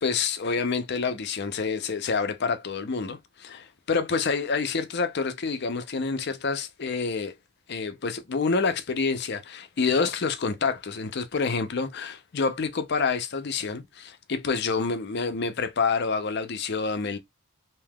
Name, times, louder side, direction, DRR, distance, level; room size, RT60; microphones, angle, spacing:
voice 1, 0.0-7.3 7.7-17.2, left 4 dB, 50° left, 0.5 m, -28 dB
3.4 x 2.8 x 2.2 m
head